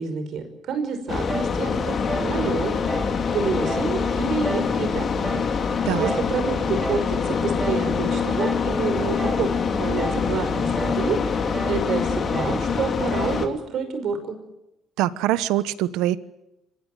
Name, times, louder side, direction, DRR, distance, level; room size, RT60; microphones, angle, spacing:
voice 1, 0.0-2.7 3.3-5.1 5.9-11.2 11.7-14.4, right 5 dB, 55° right, 9 dB, 5.5 m, -28 dB
sound 1, 1.1-13.5, left 5 dB, 35° left, 2.8 m, -25 dB
sound 2, 1.3-1.6 2.1-2.4 2.9-3.2 3.6-3.9 4.4-4.8 5.2-5.5 6.0-6.3 6.8-7.1 7.6-7.9 8.4-8.7 9.2-9.5 10.0-10.3 10.8-11.0 11.5-11.8 12.3-12.6 13.1-13.4, right 2 dB, 15° right, 4.0 m, -32 dB
voice 2, 15.0-16.2, right 14 dB, 85° right, 15 dB, 1.2 m, -23 dB
26.5 x 16.0 x 9.3 m, 0.91 s
cardioid pair, 130°, 0 cm